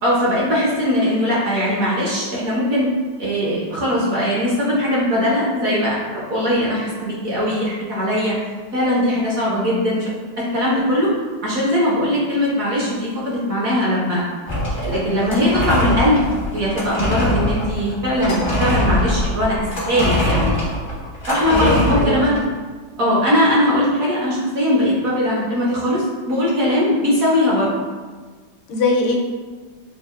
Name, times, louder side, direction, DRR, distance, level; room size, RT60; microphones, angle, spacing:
voice 1, 0.0-2.9 3.2-8.3 8.7-10.1 10.4-11.1 11.4-14.2 14.7-16.2 16.5-20.5 21.3-22.4 23.0-27.7, equal, 60° right, -6 dB, 0.9 m, -20 dB
sound 1, 14.5-22.4, left 1 dB, 35° left, 0.4 m, -22 dB
voice 2, 21.5-22.4 28.7-29.2, left 2 dB, 85° left, 1 dB, 1.4 m, -21 dB
6.1 x 2.4 x 2.4 m, 1.4 s
omnidirectional pair, 2.2 m